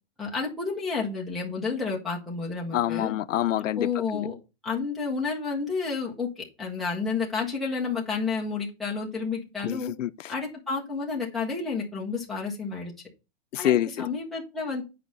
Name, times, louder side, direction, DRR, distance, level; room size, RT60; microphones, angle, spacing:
voice 1, 0.2-3.1 3.8-4.3 4.6-9.9 10.3-12.9 13.6-14.8, left 4 dB, ahead, 0.8 m, -30 dB
voice 2, 2.7-4.3 9.6-10.3 13.5-13.9, left 12 dB, 85° left, 0.6 m, -27 dB
8.4 x 4.8 x 4.0 m
hypercardioid pair, 170°, 37 cm